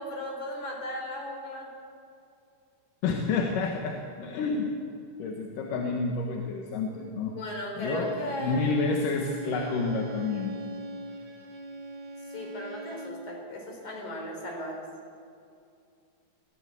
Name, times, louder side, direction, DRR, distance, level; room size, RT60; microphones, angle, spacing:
voice 1, 0.0-1.7 7.3-8.6 12.3-14.8, left 1 dB, 65° left, 0 dB, 5.6 m, -36 dB
voice 2, 3.0-4.7 5.2-7.3 7.8-8.1 8.4-10.5, left 4 dB, 85° left, 1 dB, 3.1 m, -29 dB
Bowed string instrument, 7.9-13.3, right 2 dB, 45° right, 1.7 m, -40 dB
22.5 x 15.0 x 8.3 m, 2.5 s
omnidirectional pair, 3.7 m